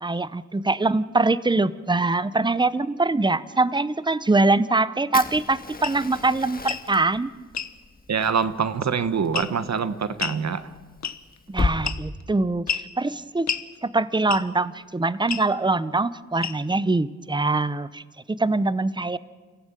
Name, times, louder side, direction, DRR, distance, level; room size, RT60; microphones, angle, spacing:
voice 1, 0.0-7.3 11.5-13.5 13.8-18.0 18.3-19.2, right 3 dB, 15° right, 16 dB, 0.7 m, -23 dB
Fire, 5.1-11.8, left 3 dB, 30° left, 1.7 m, -34 dB
sound 1, 5.8-6.0 6.6-6.9 7.5-7.7 9.3-9.7 10.2-10.4 11.0-11.4 11.8-12.2 12.7-12.9 13.5-13.7 14.3-14.6 15.3-15.5 16.4-16.8, left 7 dB, 65° left, 1.1 m, -30 dB
voice 2, 8.1-10.7, right 6 dB, 65° right, 12 dB, 1.2 m, -25 dB
30.0 x 15.5 x 9.0 m, 1.4 s
wide cardioid pair, 115°, 30 cm